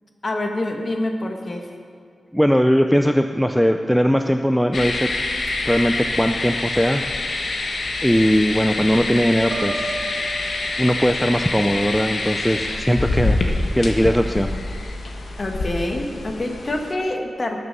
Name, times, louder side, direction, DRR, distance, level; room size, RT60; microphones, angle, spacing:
voice 1, 0.2-1.7 15.4-17.6, left 1 dB, 35° left, 3 dB, 1.7 m, -26 dB
voice 2, 2.3-5.1 5.7-7.0 7.4-7.7 8.0-10.0 10.8-13.4 13.7-14.6, equal, ahead, 6 dB, 0.5 m, -19 dB
sound 1, 4.7-16.9, left 2 dB, 60° left, 1.5 m, -26 dB
Piano, 9.5-11.4, right 2 dB, 60° right, 1.0 m, -32 dB
19.5 x 6.9 x 6.8 m, 2.2 s
wide cardioid pair, 105°, 0 cm